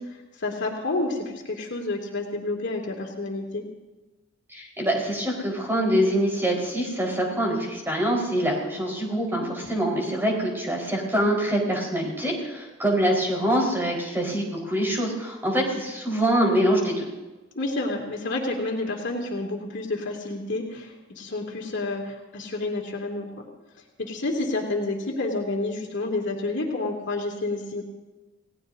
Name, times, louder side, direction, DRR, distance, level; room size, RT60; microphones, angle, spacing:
voice 1, 0.0-3.7 9.6-9.7 17.5-23.5 24.0-27.8, left 2 dB, 60° left, 0 dB, 2.7 m, -29 dB
voice 2, 4.5-17.1, equal, 10° right, -2 dB, 4.6 m, -25 dB
29.0 x 18.0 x 2.8 m, 1.1 s
head